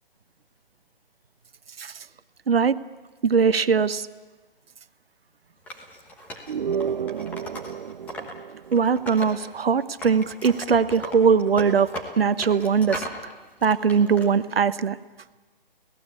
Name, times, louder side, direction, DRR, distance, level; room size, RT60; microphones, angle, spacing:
voice 1, 3.2-4.0 8.7-11.9 12.2-13.0 13.6-15.0, right 6 dB, 80° right, 13 dB, 1.1 m, -20 dB
Wood, 5.7-8.3 8.6-9.7 10.0-13.2 13.6-14.3, equal, 5° left, 1.2 m, -37 dB
sound 1, 6.5-9.4, right 7 dB, 55° right, 0.8 m, -31 dB
25.5 x 17.5 x 8.3 m, 1.3 s
hypercardioid pair, 165°, 29 cm